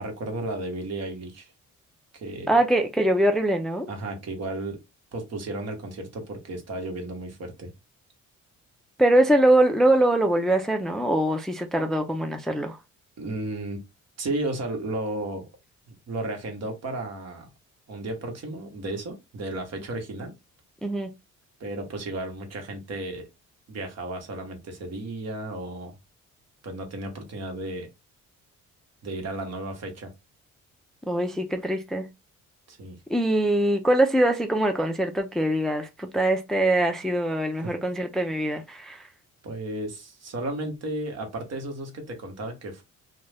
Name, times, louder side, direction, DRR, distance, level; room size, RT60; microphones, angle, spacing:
voice 1, 0.0-1.5 2.1-2.5 3.9-4.8 5.1-7.7 13.2-13.8 14.2-15.5 15.9-17.5 17.9-20.3 21.6-23.3 23.7-26.0 26.6-27.9 29.0-30.1 32.7-33.0 37.6-37.7 39.4-42.8, right 2 dB, 55° right, 1.1 m, -33 dB
voice 2, 2.5-3.9 9.0-12.8 20.8-21.1 31.1-32.1 33.1-39.1, right 1 dB, ahead, 0.4 m, -23 dB
2.5 x 2.3 x 3.3 m
cardioid pair, 90°, 30 cm